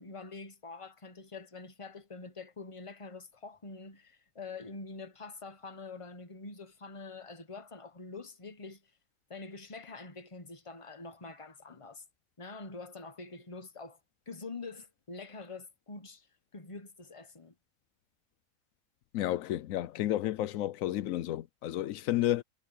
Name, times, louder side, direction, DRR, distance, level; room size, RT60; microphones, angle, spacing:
voice 1, 0.0-8.8 9.3-12.0 12.4-14.0 14.3-16.3 16.5-17.5, left 3 dB, 25° left, 1.3 m, -45 dB
voice 2, 19.1-22.4, left 13 dB, 80° left, 1.0 m, -31 dB
omnidirectional pair, 1.4 m